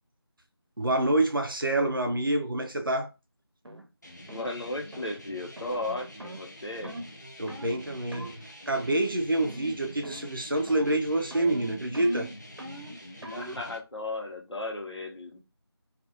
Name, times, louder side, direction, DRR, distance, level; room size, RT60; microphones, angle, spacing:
voice 1, 0.8-3.1 7.4-12.3, right 1 dB, 55° right, 0.5 m, -27 dB
sound 1, 3.6-3.8 4.3-4.5 4.9-5.1 5.6-5.8 6.2-6.4 6.8-7.1 7.5-7.7 8.1-8.4 8.7-9.1 9.4-9.8 10.0-10.4 10.7-11.0 11.3-13.6, equal, 90° right, 0.8 m, -41 dB
sound 2, 4.0-13.8, equal, 45° left, 0.5 m, -47 dB
voice 2, 4.3-6.9 13.3-15.4, left 2 dB, 90° left, 1.0 m, -35 dB
2.5 x 2.4 x 2.8 m
figure-of-eight pair, 180°, 14 cm